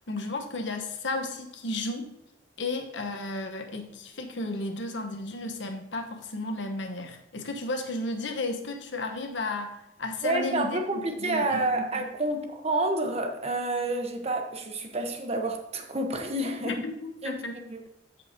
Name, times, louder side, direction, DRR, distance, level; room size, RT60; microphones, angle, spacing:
voice 1, 0.1-2.1 2.6-12.0 16.6-17.5, left 2 dB, 70° left, 1.1 m, -33 dB
voice 2, 10.2-16.8 17.2-17.4 17.7-17.8, right 2 dB, 35° right, 1.1 m, -29 dB
14.5 x 5.5 x 2.8 m
head